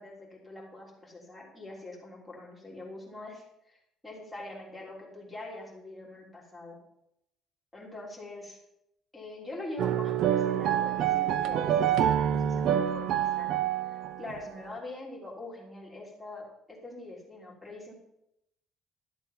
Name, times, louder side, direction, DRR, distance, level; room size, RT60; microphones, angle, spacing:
voice 1, 0.0-3.8 4.0-6.8 7.7-8.6 9.1-17.9, left 2 dB, 5° left, -5 dB, 3.6 m, -44 dB
sound 1, 9.8-14.4, right 10 dB, 55° right, 0.6 m, -27 dB
12.5 x 7.8 x 5.7 m, 0.81 s
cardioid pair, 165°, 0 cm